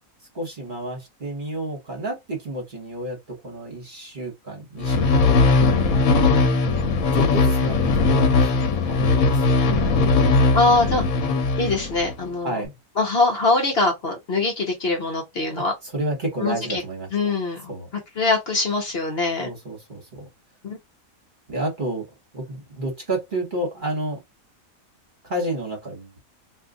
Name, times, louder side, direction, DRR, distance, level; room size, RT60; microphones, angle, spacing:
voice 1, 0.3-6.1 7.1-9.8 12.4-12.8 15.8-17.1 17.7-17.9 19.4-20.3 21.5-22.1 22.3-24.2 25.2-26.2, right 1 dB, 40° right, 1.3 m, -31 dB
sound 1, 4.8-12.2, left 3 dB, 85° left, 1.2 m, -19 dB
voice 2, 10.5-11.0 11.6-12.6 13.0-15.7 16.4-16.8 17.1-17.7 18.2-19.5 20.6-20.8, left 3 dB, 50° left, 1.0 m, -22 dB
2.7 x 2.4 x 3.7 m
omnidirectional pair, 1.4 m